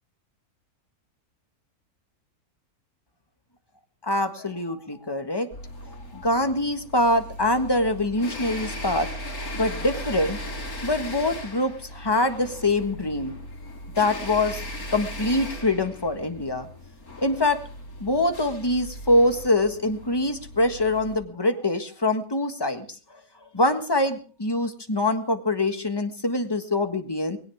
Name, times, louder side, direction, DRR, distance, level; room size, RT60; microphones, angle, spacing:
voice 1, 4.0-5.5 5.9-10.4 10.8-13.4 14.0-14.6 14.9-16.7 17.2-17.6 18.0-22.8 23.5-27.4, left 2 dB, 15° left, 7 dB, 1.5 m, -24 dB
sound 1, 5.5-21.2, left 1 dB, 75° left, 3.4 m, -38 dB
20.0 x 17.5 x 3.6 m, 0.40 s
omnidirectional pair, 1.6 m